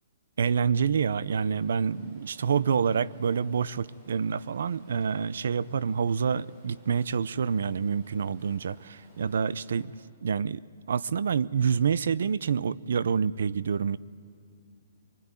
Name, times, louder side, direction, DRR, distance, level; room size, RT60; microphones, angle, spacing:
voice 1, 0.4-9.9 10.2-10.6 10.9-14.0, right 6 dB, 70° right, 20 dB, 0.6 m, -27 dB
Stream, 1.1-9.9, equal, 30° right, 7.5 m, -59 dB
24.0 x 22.0 x 9.7 m, 2.4 s
hypercardioid pair, 170°, 0 cm